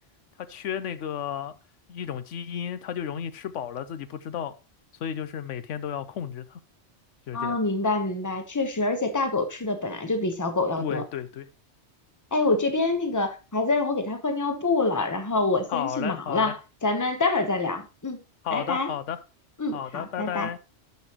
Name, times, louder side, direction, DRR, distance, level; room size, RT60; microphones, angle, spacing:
voice 1, 0.4-1.5 1.9-4.5 5.0-6.6 7.3-7.6 10.8-11.5 15.7-16.5 18.4-19.2 19.7-20.6, left 9 dB, 85° left, 1.0 m, -33 dB
voice 2, 7.3-11.0 12.3-18.2 18.5-18.9 19.6-20.5, left 3 dB, 15° left, 1.0 m, -26 dB
12.5 x 5.7 x 3.0 m
omnidirectional pair, 1.2 m